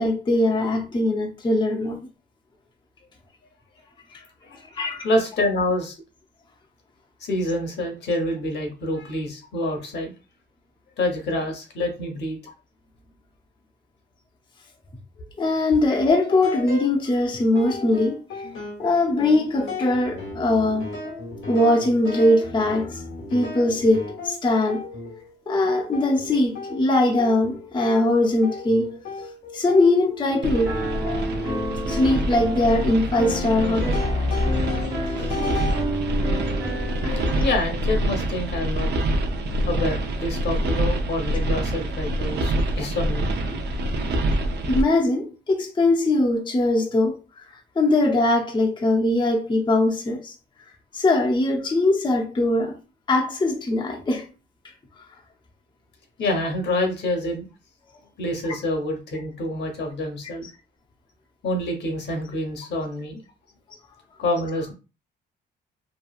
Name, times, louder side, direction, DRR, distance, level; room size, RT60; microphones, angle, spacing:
voice 1, 0.0-2.0 4.8-5.1 15.4-18.5 18.8-20.9 21.5-23.0 23.3-24.9 25.5-28.9 29.5-30.8 31.9-34.0 35.2-35.3 37.0-37.1 44.7-50.3 50.9-52.8 53.1-54.3, left 2 dB, 25° left, 0.6 m, -21 dB
voice 2, 5.0-5.9 7.2-10.1 11.0-12.4 34.8-35.1 37.4-38.9 39.7-43.3 56.2-57.5 58.2-60.5 61.4-63.2 64.2-64.7, left 1 dB, 60° left, 0.9 m, -27 dB
sound 1, 15.9-17.1 17.5-25.3 25.7-35.8, left 3 dB, 80° left, 1.0 m, -35 dB
sound 2, 30.4-44.8, right 1 dB, 60° right, 0.6 m, -26 dB
Piano, 30.7-37.5, left 1 dB, 20° right, 0.8 m, -29 dB
2.9 x 2.3 x 2.3 m
cardioid pair, 90°, 20 cm